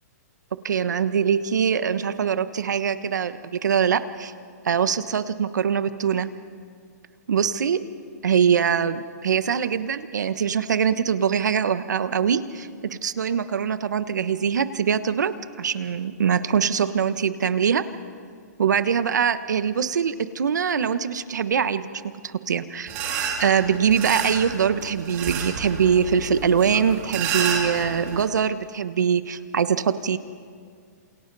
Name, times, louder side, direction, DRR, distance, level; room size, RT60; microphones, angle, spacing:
voice 1, 0.6-4.3 4.6-6.3 7.3-7.8 8.2-17.8 18.6-21.9 22.2-22.9 23.4-30.2, right 7 dB, 90° right, 12 dB, 1.2 m, -23 dB
sound 1, 22.9-28.2, right 6 dB, 25° right, 3.0 m, -30 dB
28.5 x 28.0 x 4.1 m, 2.1 s
hypercardioid pair, 165°, 9 cm